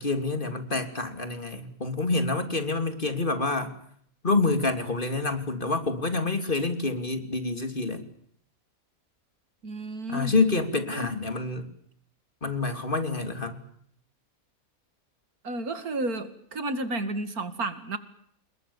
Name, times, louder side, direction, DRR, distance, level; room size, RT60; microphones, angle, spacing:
voice 1, 0.0-3.8 4.2-8.0 10.1-11.7 12.4-13.6, left 3 dB, 35° left, 8 dB, 3.4 m, -27 dB
voice 2, 9.6-10.3 10.9-11.1 15.4-18.0, right 2 dB, 85° right, 11 dB, 2.8 m, -32 dB
29.0 x 22.0 x 7.3 m, 0.66 s
omnidirectional pair, 1.5 m